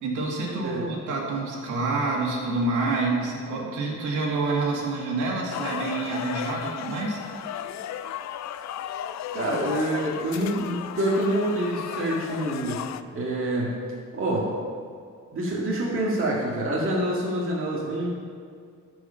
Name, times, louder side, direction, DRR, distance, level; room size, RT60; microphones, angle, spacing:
voice 1, 0.0-7.2, right 3 dB, 80° right, -2 dB, 2.1 m, -27 dB
sound 1, 5.5-13.0, left 10 dB, 65° left, 0.5 m, -35 dB
voice 2, 9.3-12.8 13.1-13.7 14.1-14.5 15.3-18.1, right 1 dB, 45° right, -5 dB, 1.9 m, -26 dB
12.5 x 4.9 x 5.6 m, 2.2 s
cardioid pair, 90°, 30 cm